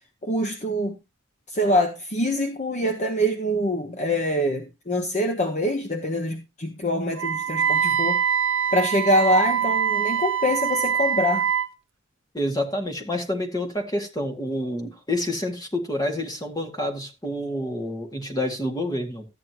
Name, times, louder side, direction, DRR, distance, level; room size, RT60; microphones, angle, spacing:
voice 1, 0.2-1.0 1.5-8.2 8.7-11.5, equal, 35° left, 1.1 m, -24 dB
Wind instrument woodwind instrument, 7.2-11.7, right 8 dB, 65° right, 0.6 m, -24 dB
voice 2, 12.3-19.3, left 1 dB, 20° left, 2.1 m, -28 dB
13.5 x 9.3 x 3.0 m
head